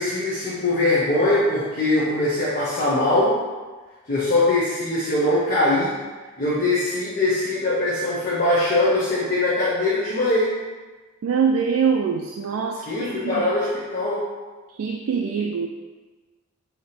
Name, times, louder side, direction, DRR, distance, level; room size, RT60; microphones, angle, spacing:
voice 1, 0.0-3.4 4.1-5.9 6.4-10.5 12.9-14.2, left 2 dB, 40° left, -9 dB, 0.7 m, -21 dB
voice 2, 11.2-13.5 14.8-15.7, right 6 dB, 75° right, 1 dB, 0.3 m, -24 dB
3.3 x 2.8 x 4.2 m, 1.3 s
head